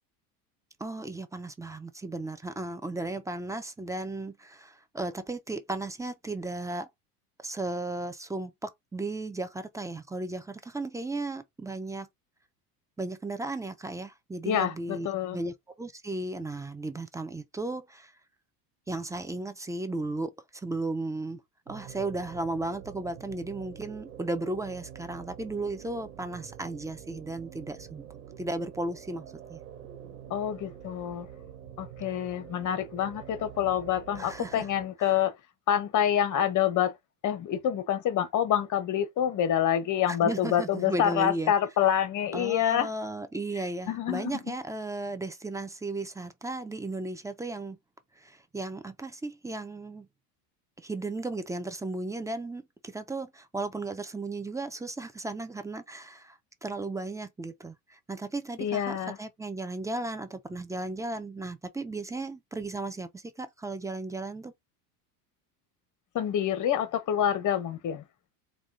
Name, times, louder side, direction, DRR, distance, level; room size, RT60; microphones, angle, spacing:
voice 1, 0.8-6.9 7.4-12.1 13.0-15.1 15.3-18.1 18.9-21.4 21.7-28.0 28.4-29.6 34.2-34.7 40.1-41.5 42.3-47.8 48.2-50.1 50.8-64.5, right 2 dB, 5° right, 0.4 m, -35 dB
voice 2, 14.5-15.4 30.3-31.3 31.8-35.3 35.7-36.9 37.2-42.9 43.9-44.5 58.6-59.2 66.1-68.0, left 10 dB, 40° left, 1.0 m, -27 dB
sound 1, 21.7-34.9, right 9 dB, 80° right, 1.5 m, -46 dB
3.6 x 2.3 x 3.6 m
hypercardioid pair, 90°, 48 cm